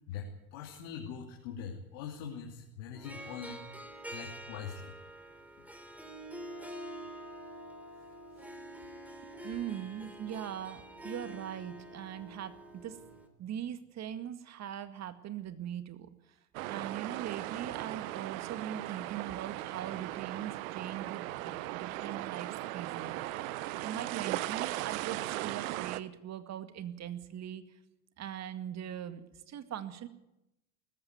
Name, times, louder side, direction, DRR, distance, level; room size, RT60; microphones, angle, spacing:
voice 1, 0.1-3.6 4.1-4.9 5.6-5.7, left 7 dB, 60° left, 1 dB, 3.1 m, -43 dB
Harp, 2.9-13.3, right 1 dB, 5° right, 3.4 m, -46 dB
voice 2, 9.4-13.1 13.4-16.4 16.7-27.6 28.2-30.1, right 10 dB, 35° right, 10 dB, 2.0 m, -41 dB
sound 1, 16.5-26.0, right 16 dB, 65° right, 1.1 m, -38 dB
19.5 x 14.5 x 9.6 m, 0.89 s
hypercardioid pair, 85°, 44 cm